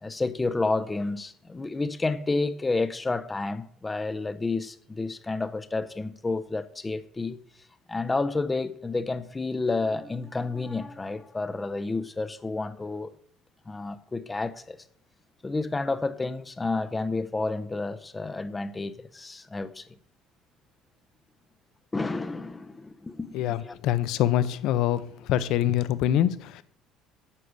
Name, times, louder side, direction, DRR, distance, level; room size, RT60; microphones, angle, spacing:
voice 1, 0.0-7.4 7.9-13.1 13.7-14.8 15.4-19.9 21.9-23.7, left 3 dB, 15° left, 0.6 m, -30 dB
voice 2, 23.3-25.0 25.3-26.6, left 12 dB, 60° left, 0.6 m, -24 dB
9.8 x 6.7 x 6.2 m
cardioid pair, 155°, 0 cm